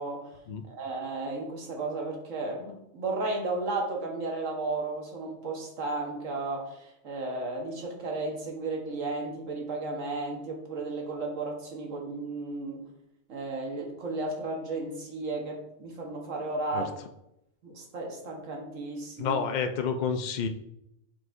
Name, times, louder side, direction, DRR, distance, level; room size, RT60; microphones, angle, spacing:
voice 1, 0.7-12.9 13.3-16.9 17.6-19.4, right 3 dB, 80° right, 0 dB, 1.6 m, -34 dB
voice 2, 19.2-20.5, left 6 dB, 50° left, 7 dB, 0.6 m, -29 dB
8.1 x 4.8 x 2.6 m, 0.81 s
omnidirectional pair, 1.3 m